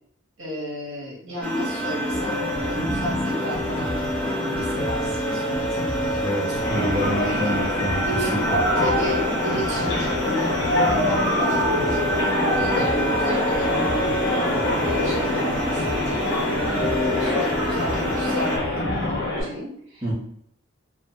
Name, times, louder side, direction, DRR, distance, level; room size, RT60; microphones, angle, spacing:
voice 1, 0.4-6.3 7.2-7.7 8.0-8.4 8.8-14.4 14.8-20.1, equal, 65° right, -3 dB, 0.8 m, -34 dB
sound 1, 1.4-18.6, right 1 dB, 5° left, 0.4 m, -28 dB
sound 2, 2.1-19.2, left 1 dB, 70° left, 0.8 m, -30 dB
voice 2, 6.2-8.0 8.3-8.6 20.0-20.1, equal, 15° right, -8 dB, 0.7 m, -27 dB
sound 3, 6.6-19.4, left 1 dB, 50° left, 1.0 m, -25 dB
2.7 x 2.3 x 2.6 m, 0.68 s
head